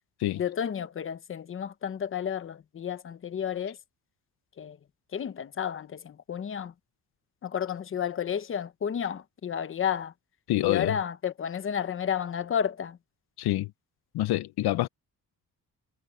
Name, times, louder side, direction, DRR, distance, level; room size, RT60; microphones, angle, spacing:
voice 1, 0.3-3.8 4.6-4.8 5.1-6.7 7.4-10.1 10.7-13.0, left 8 dB, 35° left, 0.9 m, -31 dB
voice 2, 10.5-11.0 13.4-13.7 14.1-14.9, left 15 dB, 85° left, 0.8 m, -26 dB
cardioid pair, 175°, 37 cm